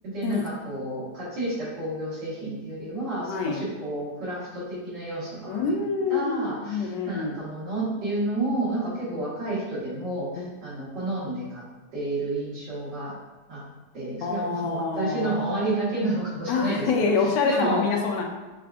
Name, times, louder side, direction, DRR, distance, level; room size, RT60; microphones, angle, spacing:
voice 1, 0.0-5.8 6.1-11.6 11.9-13.1 13.5-13.6 13.9-17.9, right 2 dB, 80° right, -8 dB, 2.2 m, -30 dB
voice 2, 3.2-3.6 5.5-7.4 9.1-9.2 10.4-10.5 14.2-15.4 16.5-18.2, left 4 dB, 80° left, 1 dB, 1.3 m, -26 dB
6.6 x 2.5 x 2.3 m, 1.2 s
omnidirectional pair, 1.9 m